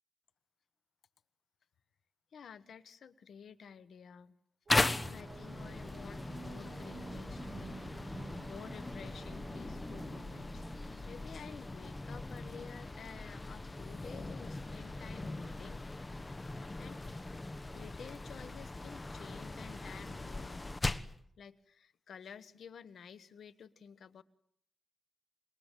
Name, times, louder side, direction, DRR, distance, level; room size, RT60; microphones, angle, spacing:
voice 1, 2.3-4.3 5.1-15.8 16.5-17.0 17.7-21.1 21.4-24.2, left 7 dB, 85° left, 17 dB, 1.3 m, -52 dB
sound 1, 4.7-21.2, left 2 dB, 25° left, 1.2 m, -39 dB
sound 2, 4.7-12.0, right 4 dB, 50° right, 1.1 m, -52 dB
27.0 x 22.0 x 9.1 m, 0.65 s
cardioid pair, 80°, 0 cm